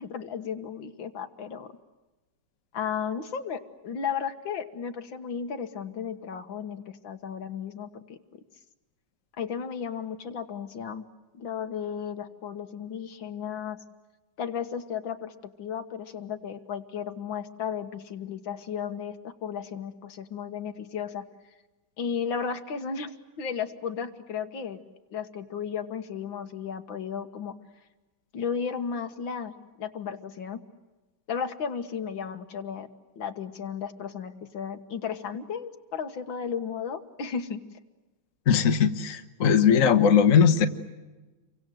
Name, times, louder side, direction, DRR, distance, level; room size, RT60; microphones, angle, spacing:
voice 1, 0.0-1.7 2.7-8.2 9.4-11.0 11.4-13.8 14.4-15.3 15.6-21.2 22.0-24.8 25.1-27.6 28.3-29.5 29.8-30.6 31.3-32.9 33.2-37.6, left 7 dB, 65° left, 8 dB, 2.0 m, -34 dB
voice 2, 38.5-40.7, left 7 dB, 45° left, 6 dB, 1.5 m, -19 dB
29.0 x 24.5 x 7.7 m, 1.2 s
omnidirectional pair, 2.3 m